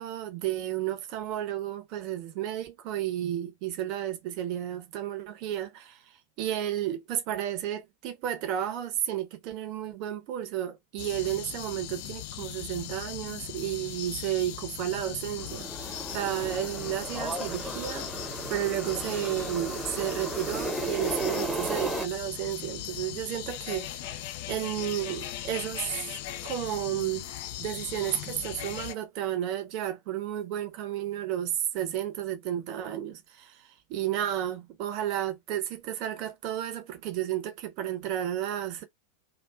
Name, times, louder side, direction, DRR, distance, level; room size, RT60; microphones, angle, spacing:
voice 1, 0.0-24.2 24.5-27.3 27.6-38.8, right 11 dB, 45° right, 0.8 m, -32 dB
sound 1, 11.0-28.9, left 12 dB, 50° left, 0.4 m, -39 dB
sound 2, 15.4-22.0, right 1 dB, 5° right, 0.8 m, -35 dB
2.4 x 2.2 x 2.3 m
figure-of-eight pair, 90°, 0 cm